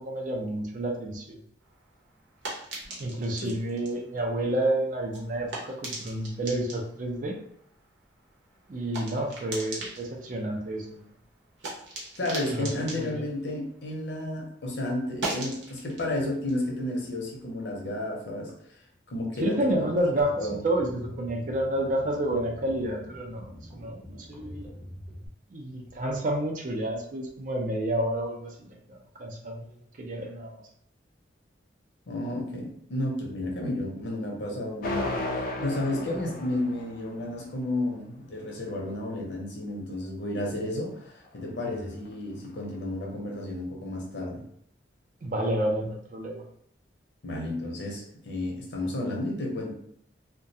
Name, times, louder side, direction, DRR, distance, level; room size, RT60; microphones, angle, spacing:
voice 1, 0.0-1.4 3.0-7.4 8.7-11.1 12.5-13.2 19.4-24.7 25.5-29.6 30.0-30.5 45.2-46.4, right 1 dB, 45° right, 1 dB, 0.4 m, -30 dB
sound 1, 1.6-14.4 14.7-17.9, right 2 dB, 85° right, 0.8 m, -41 dB
voice 2, 12.2-18.5 19.1-19.9 20.1-20.6 32.1-35.2 35.6-44.4 47.2-49.7, left 1 dB, 70° left, 0 dB, 0.7 m, -32 dB
sound 2, 20.2-25.3, equal, 5° left, 0.6 m, -46 dB
sound 3, 34.8-37.7, left 2 dB, 50° left, 0.3 m, -34 dB
2.3 x 2.2 x 2.7 m, 0.69 s
head